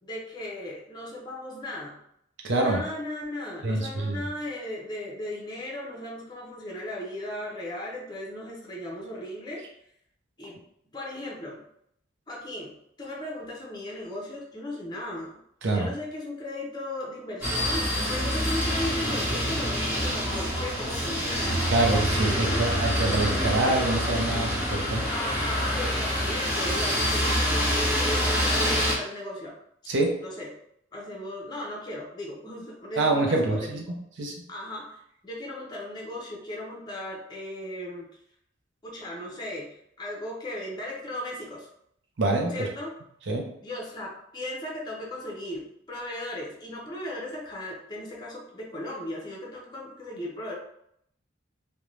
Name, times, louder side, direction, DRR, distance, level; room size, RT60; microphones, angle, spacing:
voice 1, 0.0-2.0 2.5-9.6 10.4-10.6 10.9-11.6 12.3-15.4 15.7-21.5 22.1-22.7 25.1-29.5 30.2-30.5 30.9-33.7 34.5-38.1 38.8-41.7 42.5-42.9 43.6-50.5, left 1 dB, 20° left, -2 dB, 0.6 m, -37 dB
voice 2, 2.4-2.8 3.6-4.2 15.6-15.9 21.7-25.1 29.9-30.2 33.0-33.8 34.2-34.3 42.2-42.7 43.3-43.5, right 2 dB, 65° right, 1 dB, 0.6 m, -25 dB
sound 1, 17.4-28.9, equal, 10° right, 0.9 m, -26 dB
2.6 x 2.2 x 3.1 m, 0.72 s
head